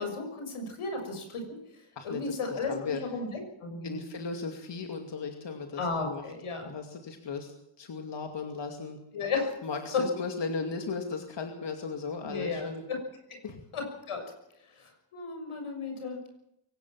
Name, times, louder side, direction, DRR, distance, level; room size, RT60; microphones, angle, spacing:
voice 1, 0.0-1.6 2.0-4.0 5.8-6.7 9.1-9.5 9.9-10.1 12.2-13.0 13.3-13.4 13.7-14.3 14.8-16.2, left 4 dB, 90° left, 4 dB, 6.5 m, -34 dB
voice 2, 2.0-3.0 3.8-6.2 6.6-7.5 7.8-9.0 9.6-12.8 13.4-13.6, left 4 dB, 60° left, 4 dB, 2.6 m, -36 dB
23.0 x 18.0 x 7.5 m, 0.81 s
wide cardioid pair, 100°, 49 cm